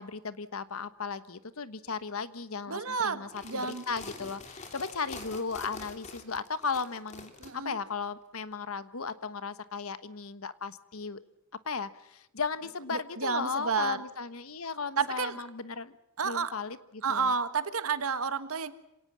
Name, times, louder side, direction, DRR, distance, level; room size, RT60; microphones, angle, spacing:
voice 1, 0.0-11.2 11.6-16.0 16.2-17.3, left 5 dB, 80° left, 14 dB, 1.2 m, -36 dB
voice 2, 2.7-3.8 7.4-7.8 12.9-14.0 15.0-15.4 16.2-16.5 17.0-18.7, right 5 dB, 90° right, 12 dB, 1.5 m, -30 dB
sound 1, 3.2-7.5, left 3 dB, 35° left, 2.9 m, -45 dB
27.0 x 18.0 x 7.5 m, 0.87 s
head